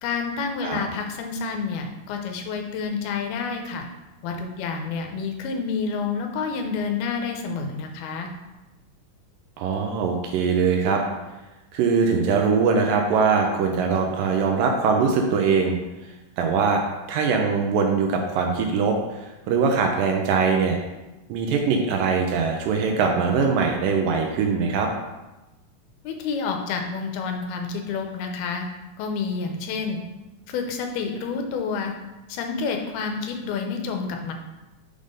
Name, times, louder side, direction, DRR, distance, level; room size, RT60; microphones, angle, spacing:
voice 1, 0.0-3.8 4.2-8.3 26.0-28.7 29.0-30.0 30.5-31.9 32.3-34.3, left 5 dB, 85° left, 4 dB, 2.7 m, -29 dB
voice 2, 9.6-11.0 11.7-15.8 16.4-16.8 17.1-20.8 21.3-24.9, right 5 dB, 80° right, 2 dB, 2.2 m, -22 dB
6.5 x 3.7 x 5.1 m, 1.1 s
omnidirectional pair, 4.3 m